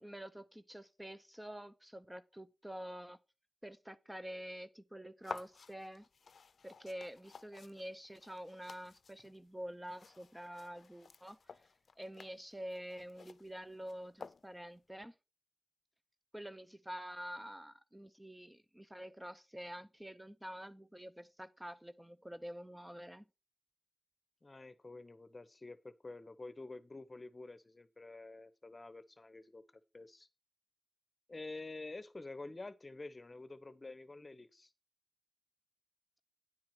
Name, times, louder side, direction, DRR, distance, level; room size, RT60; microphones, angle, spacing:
voice 1, 0.0-3.2 3.6-6.1 6.6-11.4 12.0-15.1 16.3-23.2, equal, 10° right, 0.6 m, -47 dB
sound 1, 5.2-14.8, left 5 dB, 85° left, 0.5 m, -53 dB
voice 2, 24.4-29.6 29.9-30.3 31.3-34.7, left 2 dB, 35° left, 0.9 m, -49 dB
9.7 x 4.6 x 5.9 m
wide cardioid pair, 70°, 0 cm